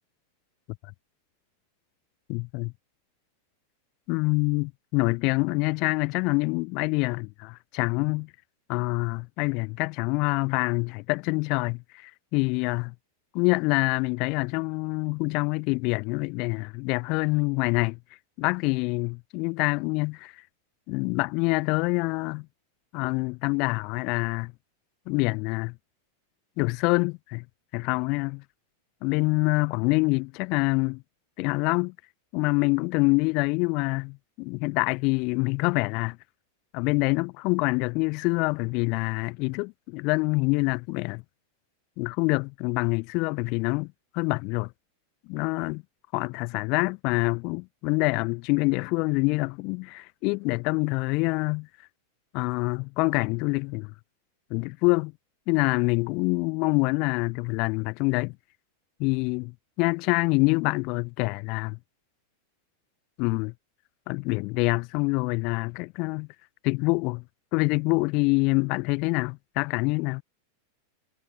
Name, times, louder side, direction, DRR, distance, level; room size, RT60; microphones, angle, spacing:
voice 1, 2.3-2.7 4.1-8.3 8.7-12.9 13.3-18.0 18.4-20.3 20.9-22.5 22.9-24.5 25.1-25.7 26.6-27.4 27.7-28.4 29.0-31.0 31.4-31.9 32.3-36.2 36.7-41.2 42.0-44.7 45.3-45.8 46.1-51.7 52.3-53.9 54.5-55.1 55.5-58.4 59.0-61.8 63.2-63.5 64.1-66.3 66.6-67.2 67.5-70.2, left 29 dB, 45° left, 0.5 m, -26 dB
figure-of-eight pair, 90°, 0 cm